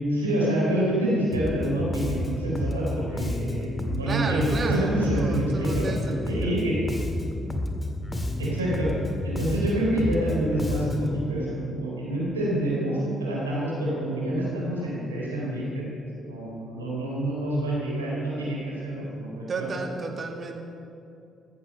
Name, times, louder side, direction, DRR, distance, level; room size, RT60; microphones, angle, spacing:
voice 1, 0.1-5.9 6.2-6.8 8.4-8.9 9.2-15.9 16.2-19.7, right 1 dB, 85° right, -5 dB, 4.0 m, -27 dB
Bass guitar, 1.3-11.2, left 1 dB, 25° left, 1.9 m, -31 dB
voice 2, 4.0-6.6 19.5-20.6, right 3 dB, 40° right, 4 dB, 2.1 m, -32 dB
15.0 x 14.5 x 5.6 m, 2.7 s
figure-of-eight pair, 45°, 0 cm